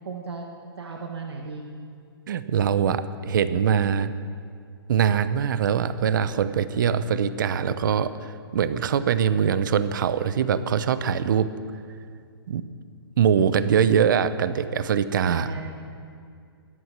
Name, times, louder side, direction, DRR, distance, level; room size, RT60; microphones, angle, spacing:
voice 1, 0.1-0.5 0.8-1.6 15.3-15.6, right 5 dB, 90° right, 1 dB, 1.7 m, -34 dB
voice 2, 2.3-4.1 4.9-11.6 12.5-12.7 13.2-15.5, right 8 dB, 55° right, 14 dB, 0.8 m, -23 dB
21.5 x 8.0 x 6.8 m, 2.3 s
hypercardioid pair, 160°, 13 cm